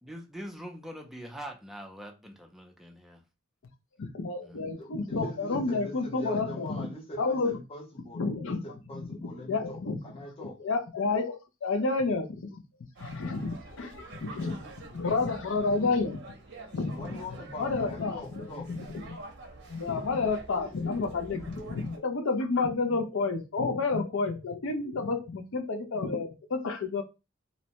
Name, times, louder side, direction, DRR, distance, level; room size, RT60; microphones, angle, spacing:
voice 1, 0.0-3.2 4.4-4.6, equal, ahead, 2 dB, 0.4 m, -43 dB
voice 2, 4.0-6.9 7.2-7.6 8.1-8.6 8.9-9.1 9.4-10.0 10.6-12.3 13.0-14.6 14.9-16.2 16.7-17.2 17.6-19.2 19.7-27.0, left 3 dB, 65° left, 6 dB, 0.5 m, -30 dB
voice 3, 4.8-10.6 17.0-18.7, left 2 dB, 30° left, 0 dB, 0.7 m, -43 dB
sound 1, 13.0-22.0, right 2 dB, 55° right, 0.6 m, -47 dB
2.7 x 2.1 x 2.8 m, 0.28 s
head